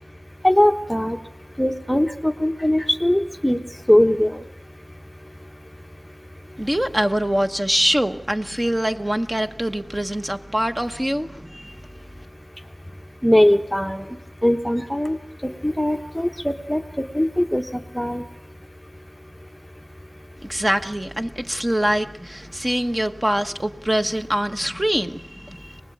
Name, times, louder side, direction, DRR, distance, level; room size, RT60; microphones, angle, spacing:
voice 1, 0.4-1.2 1.6-3.6 3.9-4.4 13.2-14.0 14.4-16.8 17.1-17.6 17.9-18.2, left 1 dB, 5° left, 1.1 m, -20 dB
voice 2, 6.6-11.8 20.4-25.8, equal, 20° right, 1.3 m, -24 dB
28.5 x 19.5 x 8.6 m
wide cardioid pair, 60°, 0 cm